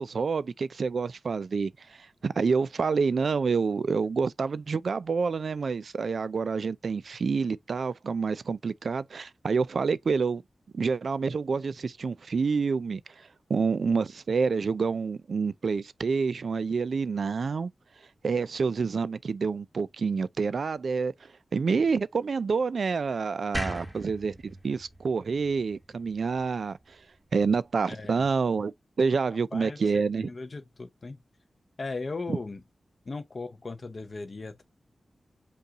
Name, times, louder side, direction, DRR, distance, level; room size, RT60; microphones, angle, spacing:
voice 1, 0.0-10.4 10.7-17.7 18.2-27.0 27.3-30.3 32.3-32.4, right 5 dB, 65° right, 0.3 m, -28 dB
sound 1, 23.5-26.7, right 1 dB, 5° right, 0.8 m, -38 dB
voice 2, 27.9-28.3 29.5-29.8 30.2-31.2 31.8-32.6 33.0-34.6, left 3 dB, 40° left, 0.6 m, -37 dB
5.3 x 2.3 x 3.9 m
wide cardioid pair, 150°, 0 cm